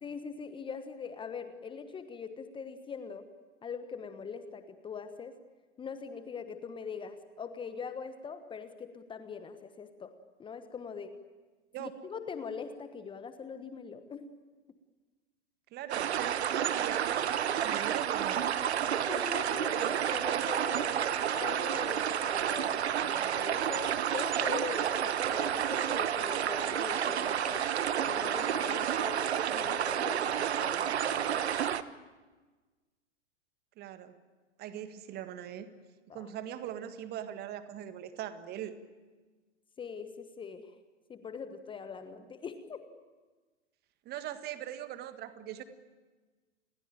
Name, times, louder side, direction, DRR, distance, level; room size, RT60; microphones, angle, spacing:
voice 1, 0.0-3.3 3.6-5.4 5.8-10.1 10.4-11.2 11.8-14.3 19.0-27.7 28.0-31.7 36.1-36.3 39.8-40.7 41.1-42.8, left 6 dB, 15° left, 10 dB, 1.2 m, -42 dB
voice 2, 15.7-18.5 33.8-34.1 34.6-35.7 36.1-38.8 44.1-45.6, right 11 dB, 25° right, 10 dB, 1.7 m, -41 dB
sound 1, 15.9-31.8, right 9 dB, 60° right, 1.2 m, -30 dB
29.0 x 21.0 x 9.0 m, 1.3 s
figure-of-eight pair, 105°, 36 cm